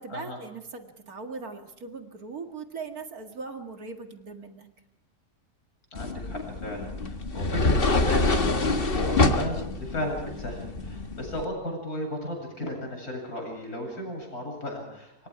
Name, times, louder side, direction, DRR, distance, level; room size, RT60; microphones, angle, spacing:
voice 1, 0.0-4.7, right 4 dB, 65° right, 5 dB, 2.5 m, -39 dB
voice 2, 5.9-15.3, left 1 dB, 65° left, 2 dB, 8.7 m, -35 dB
sound 1, 6.0-11.5, left 2 dB, 35° left, 1.7 m, -26 dB
27.0 x 24.5 x 4.9 m, 0.82 s
omnidirectional pair, 1.7 m